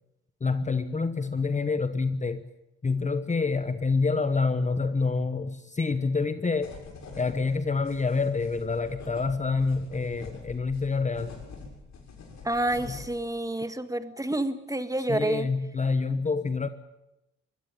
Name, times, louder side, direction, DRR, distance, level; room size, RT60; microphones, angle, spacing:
voice 1, 0.4-2.5 2.8-6.8 7.2-11.3 12.9-13.0 15.1-16.7, left 4 dB, 25° left, 11 dB, 1.1 m, -27 dB
sound 1, 6.6-13.2, left 4 dB, 65° left, 7.1 m, -46 dB
voice 2, 12.4-15.5, right 1 dB, 10° right, 10 dB, 1.8 m, -29 dB
23.0 x 16.5 x 9.2 m, 0.93 s
cardioid pair, 90°, 30 cm